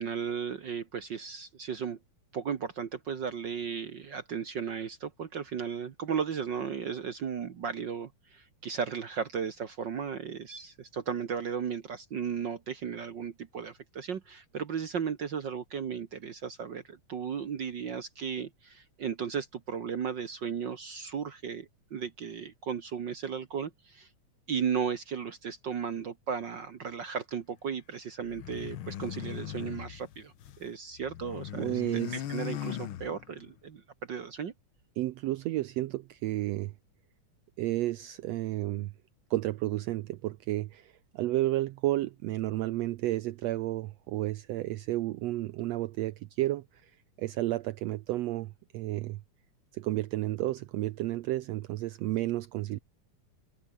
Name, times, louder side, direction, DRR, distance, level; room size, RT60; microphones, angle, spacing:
voice 1, 0.0-2.0 2.3-24.1 24.5-34.5, right 7 dB, 60° right, 1.2 m, -35 dB
sound 1, 28.2-30.7 30.9-33.5, left 11 dB, 70° left, 1.2 m, -39 dB
voice 2, 31.5-32.2 35.0-36.7 37.6-38.9 39.3-46.9 47.2-49.2 49.7-52.8, right 16 dB, 85° right, 1.4 m, -32 dB
omnidirectional pair, 3.7 m